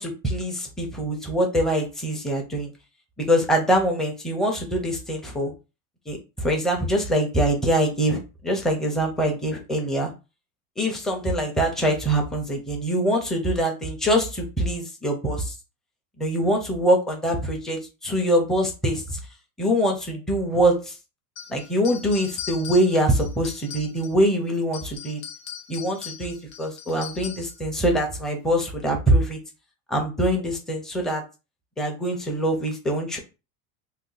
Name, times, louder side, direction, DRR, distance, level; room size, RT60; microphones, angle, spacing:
voice 1, 0.0-2.7 3.2-5.5 6.1-10.1 10.8-15.5 16.2-19.2 19.6-20.9 21.5-25.2 25.7-29.4 29.9-31.2 31.8-33.2, equal, ahead, 1 dB, 0.5 m, -24 dB
sound 1, 21.4-24.3 24.6-27.6, left 9 dB, 65° left, 0.9 m, -39 dB
2.7 x 2.3 x 3.9 m, 0.29 s
supercardioid pair, 135°, 41 cm